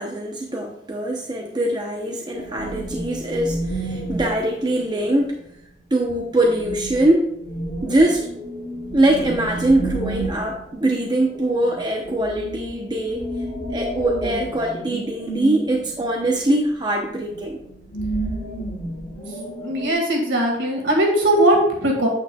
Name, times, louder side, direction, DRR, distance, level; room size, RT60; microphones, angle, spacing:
voice 1, 0.0-5.4 5.9-7.3 7.8-8.3 8.9-13.3 13.7-17.6, right 1 dB, 25° right, 1 dB, 0.7 m, -22 dB
sound 1, 2.3-5.2 6.1-6.2 6.5-16.7 17.2-19.9, right 1 dB, 40° left, 2.5 m, -31 dB
voice 2, 19.6-22.1, right 1 dB, 80° right, 0 dB, 2.0 m, -19 dB
8.7 x 8.4 x 2.3 m, 0.75 s
head